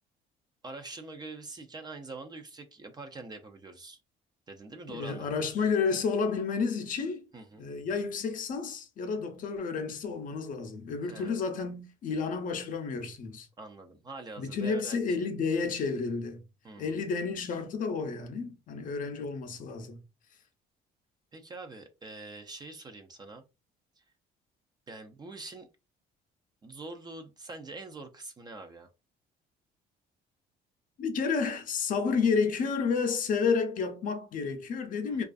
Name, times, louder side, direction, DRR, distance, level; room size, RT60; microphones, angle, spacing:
voice 1, 0.6-4.0 4.5-5.3 7.3-7.7 11.0-11.4 13.6-15.3 16.6-17.0 21.3-23.4 24.0-24.1 24.9-25.7 26.6-28.9 35.1-35.2, right 3 dB, 25° right, 0.4 m, -44 dB
voice 2, 4.9-7.3 7.6-13.5 14.4-16.4 16.8-20.0 31.0-35.2, left 5 dB, 50° left, 0.6 m, -31 dB
2.4 x 2.3 x 2.4 m
cardioid pair, 110°, 17 cm